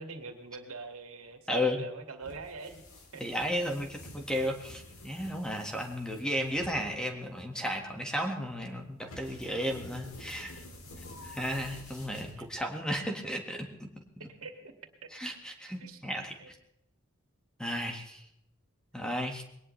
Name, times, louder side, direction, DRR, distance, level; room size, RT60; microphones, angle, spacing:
voice 1, 0.0-2.8 3.1-3.2 12.4-12.5 14.2-14.7 15.8-16.0 16.4-16.5, right 3 dB, 85° right, 5 dB, 2.2 m, -44 dB
voice 2, 1.5-1.8 3.2-10.6 11.2-13.6 15.1-16.5 17.6-18.2 18.9-19.4, equal, 5° left, 3 dB, 1.7 m, -34 dB
sound 1, 2.2-12.8, left 1 dB, 85° left, 3.3 m, -49 dB
21.5 x 18.5 x 3.3 m, 0.77 s
head